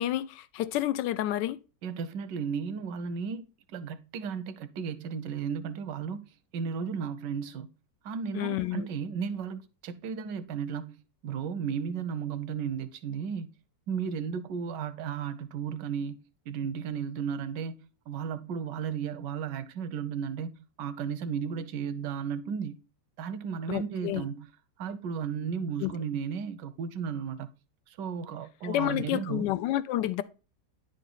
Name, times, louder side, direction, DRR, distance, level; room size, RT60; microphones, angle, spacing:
voice 1, 0.0-1.6 8.3-8.9 23.7-24.2 25.8-25.9 28.6-30.2, left 13 dB, 85° left, 1.2 m, -29 dB
voice 2, 1.8-3.4 3.7-7.7 8.0-11.0 11.2-13.5 13.9-16.2 16.5-20.5 20.8-22.8 23.2-24.5 24.8-27.5 27.9-29.5, right 6 dB, 90° right, 1.4 m, -34 dB
10.0 x 4.1 x 3.8 m
omnidirectional pair, 1.8 m